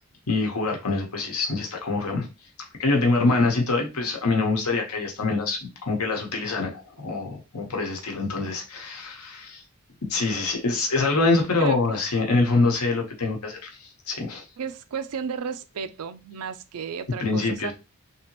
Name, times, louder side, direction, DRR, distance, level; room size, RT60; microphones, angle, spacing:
voice 1, 0.3-2.3 2.8-9.6 10.1-13.7 14.1-14.4 17.2-17.7, left 3 dB, 85° left, 1.1 m, -25 dB
voice 2, 14.6-17.7, right 6 dB, 85° right, 0.4 m, -33 dB
3.4 x 2.8 x 2.9 m
head